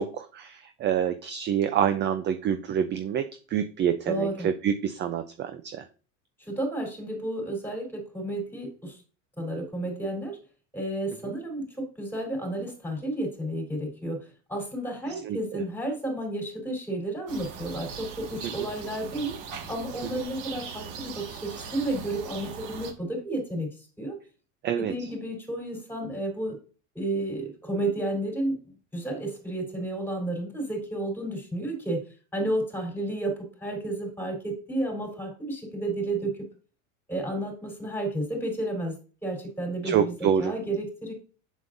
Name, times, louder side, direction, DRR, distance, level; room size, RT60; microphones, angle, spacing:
voice 1, 0.0-5.9 11.2-11.3 15.2-15.6 24.6-25.1 39.8-40.5, right 8 dB, 30° right, 10 dB, 0.5 m, -27 dB
voice 2, 4.1-4.5 6.4-9.0 9.4-10.4 10.7-19.4 19.7-23.7 24.0-24.2 24.8-26.6 27.0-28.6 28.9-32.0 32.3-36.5 37.1-41.1, right 1 dB, 5° left, 2 dB, 3.6 m, -32 dB
sound 1, 17.3-22.9, right 6 dB, 50° right, 1.8 m, -40 dB
7.4 x 7.2 x 2.6 m, 0.36 s
supercardioid pair, 125°, 39 cm